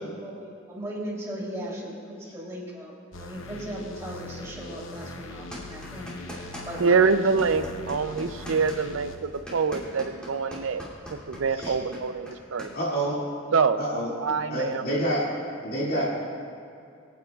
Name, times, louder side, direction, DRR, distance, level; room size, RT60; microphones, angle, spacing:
voice 1, 0.0-7.2, equal, 15° right, -6 dB, 3.1 m, -37 dB
sound 1, 3.1-9.2, left 2 dB, 85° left, 0.8 m, -41 dB
sound 2, 5.5-6.9 7.1-12.7, equal, 5° left, 2.7 m, -40 dB
voice 2, 6.8-10.8 11.1-12.7 13.5-13.8 14.2-14.8, right 5 dB, 85° right, 11 dB, 0.5 m, -25 dB
voice 3, 12.7-13.2 13.8-14.1 14.5-15.2 15.6-16.0, right 1 dB, 50° left, -7 dB, 2.3 m, -27 dB
24.0 x 9.5 x 2.4 m, 2.4 s
head